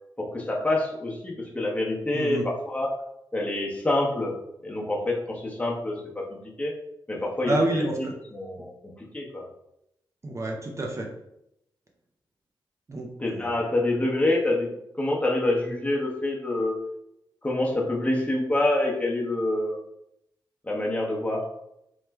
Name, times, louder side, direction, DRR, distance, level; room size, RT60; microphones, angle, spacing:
voice 1, 0.2-2.9 3.3-4.3 4.6-6.2 6.6-6.7 7.1-7.8 8.3-8.7 9.1-9.4 13.2-14.7 15.0-16.7 17.4-19.8 20.6-21.5, left 1 dB, 15° left, -2 dB, 0.8 m, -26 dB
voice 2, 2.1-2.5 7.4-8.1 10.2-11.1 12.9-13.5, right 2 dB, 35° right, 1 dB, 0.5 m, -28 dB
3.1 x 2.1 x 3.4 m, 0.81 s
cardioid pair, 70°, 8 cm